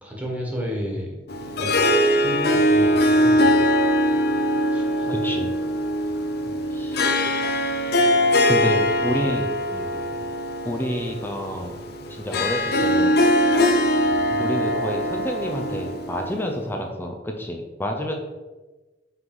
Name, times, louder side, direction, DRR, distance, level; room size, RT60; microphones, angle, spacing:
voice 1, 0.0-1.1 1.5-1.7 2.1-3.7 4.7-5.2 6.4-6.7 9.2-9.4 9.7-10.1 14.2-14.4, equal, 10° right, -2 dB, 1.6 m, -33 dB
Harp, 1.3-16.6, equal, 60° left, 0.7 m, -22 dB
voice 2, 5.1-5.5 6.7-7.0 8.5-9.5 10.6-11.7 12.1-13.2 14.4-18.1, equal, 10° left, 2 dB, 0.6 m, -28 dB
5.7 x 4.0 x 5.4 m, 1.2 s
head